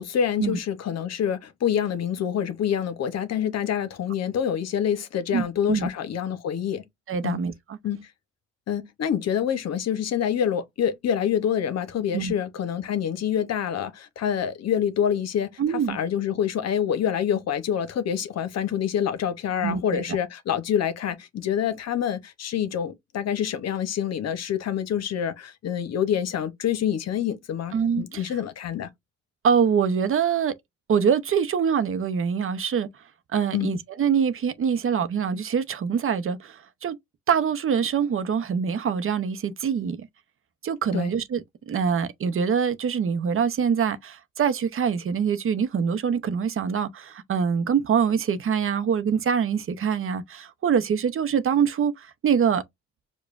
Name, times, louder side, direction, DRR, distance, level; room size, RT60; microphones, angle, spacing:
voice 1, 0.0-6.8 7.2-7.4 7.8-8.0 8.7-28.9 33.5-33.7 40.9-41.1, left 9 dB, 55° left, 0.8 m, -26 dB
voice 2, 5.3-5.9 7.1-7.8 12.1-12.3 15.6-16.0 19.6-20.0 27.7-28.3 29.4-30.5 30.9-32.9 33.3-37.0 37.3-40.1 40.6-52.6, right 7 dB, 45° right, 0.7 m, -24 dB
4.8 x 2.2 x 2.4 m
cardioid pair, 90°, 30 cm